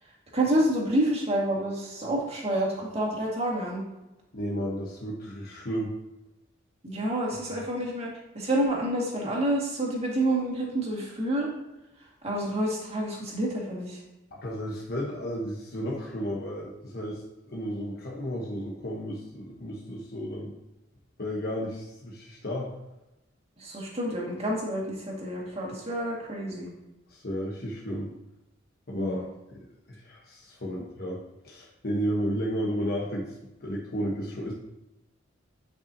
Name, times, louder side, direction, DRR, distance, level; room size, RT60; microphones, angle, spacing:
voice 1, 0.3-3.8 6.8-8.1 8.3-11.5 12.2-14.0 23.6-26.7 28.9-29.2, right 1 dB, 30° right, -3 dB, 2.1 m, -28 dB
voice 2, 4.3-5.9 14.3-20.5 21.2-22.7 27.1-28.1 28.9-29.2 29.5-29.6 29.9-31.2 31.4-33.3 33.6-34.5, equal, 50° left, -3 dB, 1.2 m, -33 dB
10.0 x 5.6 x 2.9 m, 0.95 s
head